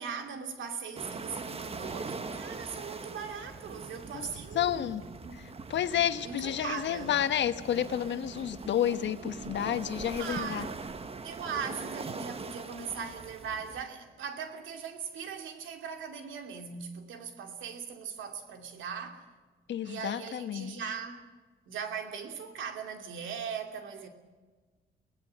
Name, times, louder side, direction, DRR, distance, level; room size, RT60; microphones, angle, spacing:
voice 1, 0.0-5.4 6.2-7.1 10.2-10.8 11.2-19.3 19.8-21.2 21.7-24.1, right 6 dB, 75° right, 2.7 m, -39 dB
sound 1, 1.0-13.9, right 4 dB, 30° right, 1.4 m, -42 dB
voice 2, 4.5-5.0 5.7-10.7 19.7-20.8, left 10 dB, 65° left, 1.3 m, -30 dB
23.5 x 18.5 x 7.6 m
cardioid pair, 90°, 20 cm